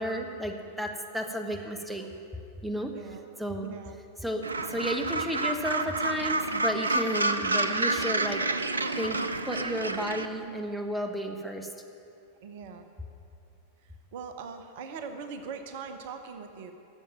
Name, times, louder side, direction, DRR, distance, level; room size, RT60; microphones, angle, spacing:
voice 1, 0.0-2.1 2.6-2.9 3.4-3.7 4.2-8.4 9.0-11.7, equal, 5° right, 4 dB, 1.1 m, -32 dB
voice 2, 2.8-3.3 3.6-4.0 12.4-12.9 13.8-16.7, right 5 dB, 50° right, 8 dB, 0.8 m, -41 dB
Gull seagull, 4.4-10.3, right 2 dB, 75° right, 0.5 m, -29 dB
12.5 x 7.2 x 8.8 m, 2.6 s
figure-of-eight pair, 90°, 0 cm